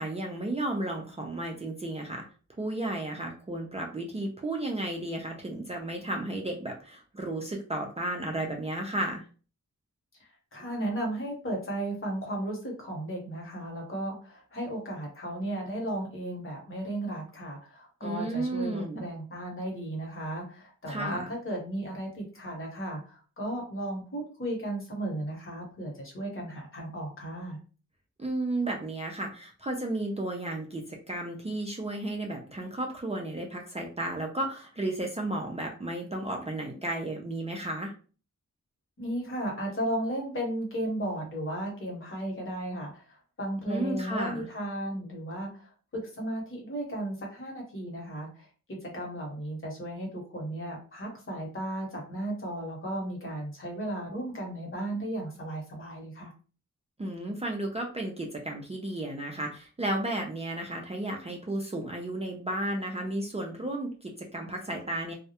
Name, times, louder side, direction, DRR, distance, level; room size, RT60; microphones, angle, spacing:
voice 1, 0.0-2.2 2.6-9.2 18.0-19.1 20.9-21.3 28.2-37.9 43.7-44.4 57.0-65.1, right 1 dB, 20° right, 0 dB, 0.4 m, -33 dB
voice 2, 10.2-27.6 39.0-56.3, right 1 dB, 45° left, -1 dB, 1.0 m, -35 dB
2.2 x 2.0 x 2.8 m, 0.37 s
wide cardioid pair, 105°, 30 cm